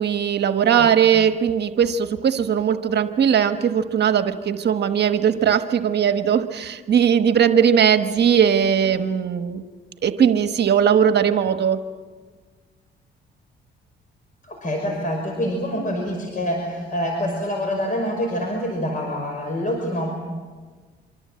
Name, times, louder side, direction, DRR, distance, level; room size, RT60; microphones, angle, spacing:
voice 1, 0.0-9.6 10.0-11.8, right 8 dB, 55° right, 9 dB, 1.3 m, -19 dB
voice 2, 14.4-20.1, equal, 40° left, 2 dB, 5.7 m, -26 dB
25.5 x 25.0 x 7.7 m, 1.5 s
cardioid pair, 90°, 20 cm